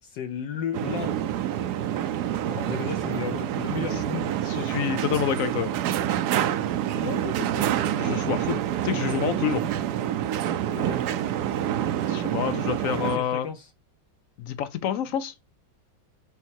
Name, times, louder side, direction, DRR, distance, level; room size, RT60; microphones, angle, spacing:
voice 1, 0.0-1.4 2.0-2.2 2.5-4.4 6.9-7.7 10.8-11.0 13.0-13.7, left 8 dB, 70° left, 1.3 m, -34 dB
sound 1, 0.7-13.2, right 11 dB, 70° right, 1.0 m, -27 dB
voice 2, 4.4-5.7 8.0-9.6 12.1-13.5 14.4-15.4, left 9 dB, 90° left, 0.7 m, -28 dB
7.2 x 4.5 x 4.5 m
omnidirectional pair, 2.1 m